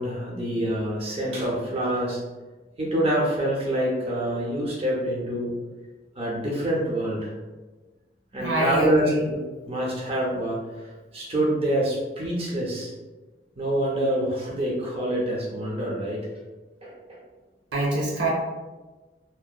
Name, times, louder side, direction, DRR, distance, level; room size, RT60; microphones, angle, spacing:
voice 1, 0.0-2.2 2.8-5.5 6.2-7.3 8.3-9.4 9.7-10.9 11.1-12.9 13.6-16.3 16.8-16.9, right 1 dB, 35° right, -4 dB, 0.4 m, -26 dB
voice 2, 8.4-9.2 17.7-18.3, right 1 dB, 90° right, -4 dB, 0.8 m, -25 dB
2.6 x 2.0 x 2.3 m, 1.2 s
head